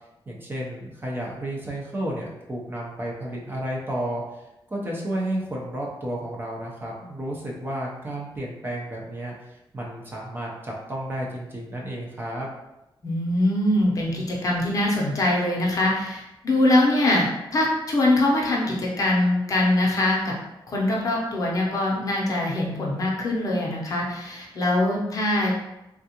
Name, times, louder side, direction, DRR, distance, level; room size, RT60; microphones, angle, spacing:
voice 1, 0.3-4.4 4.7-12.5, right 1 dB, 25° right, -3 dB, 0.5 m, -32 dB
voice 2, 13.0-20.3 20.7-25.5, left 1 dB, 40° left, -3 dB, 0.7 m, -23 dB
3.4 x 2.4 x 2.8 m, 0.92 s
wide cardioid pair, 175°, 9 cm